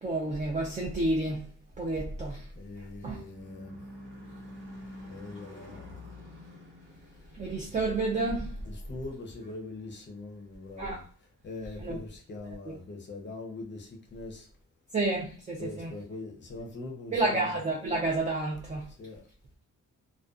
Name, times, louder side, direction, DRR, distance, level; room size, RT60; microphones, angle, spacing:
voice 1, 0.0-1.4 1.8-2.5 2.8-3.2 7.4-8.6 10.8-11.0 11.8-12.0 12.6-12.7 14.9-15.9 17.1-18.9, right 2 dB, 25° right, 0.4 m, -30 dB
voice 2, 2.5-3.8 5.1-6.0 8.6-11.0 11.4-14.5 15.6-17.6 19.0-19.2, left 2 dB, 35° left, 0.6 m, -42 dB
Car passing by / Truck / Engine, 2.5-10.8, left 1 dB, 80° right, 1.0 m, -49 dB
2.4 x 2.2 x 2.4 m
wide cardioid pair, 145°, 31 cm